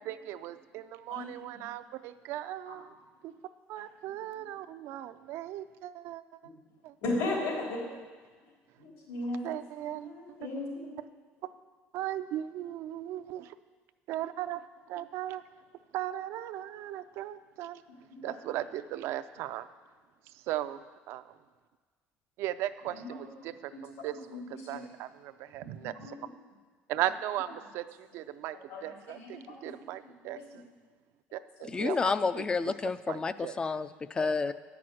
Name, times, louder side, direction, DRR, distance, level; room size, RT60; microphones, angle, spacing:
voice 1, 0.0-2.9 3.2-3.3 3.7-6.2 6.8-6.9 7.9-8.0 9.4-10.1 11.9-13.6 14.1-15.4 15.9-17.8 18.2-19.7 20.3-21.3 22.4-26.2 26.9-30.6 31.3-32.7 33.1-33.6, right 13 dB, 70° right, 11 dB, 0.5 m, -37 dB
voice 2, 7.0-7.8 8.8-9.6 10.0-11.0 18.1-18.4 23.0-23.3 24.1-24.4 24.7-24.8 25.8-26.2 28.7-29.6 30.2-30.4 34.2-34.3, left 2 dB, 80° left, -3 dB, 3.6 m, -36 dB
voice 3, 31.7-34.5, left 4 dB, 20° left, 14 dB, 0.3 m, -30 dB
10.0 x 6.0 x 7.7 m, 1.5 s
cardioid pair, 140°, 5 cm